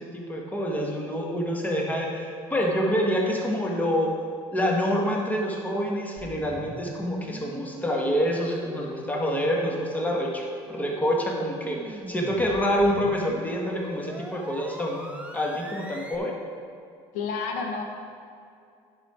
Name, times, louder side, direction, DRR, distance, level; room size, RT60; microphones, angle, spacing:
voice 1, 0.0-4.1 4.5-10.4 10.7-16.4, equal, 10° left, -1 dB, 1.6 m, -27 dB
sound 1, 6.2-16.2, right 1 dB, 10° right, 0.8 m, -41 dB
voice 2, 17.1-17.8, left 5 dB, 75° left, 2 dB, 1.2 m, -29 dB
9.6 x 6.4 x 4.4 m, 2.5 s
supercardioid pair, 85°, 13 cm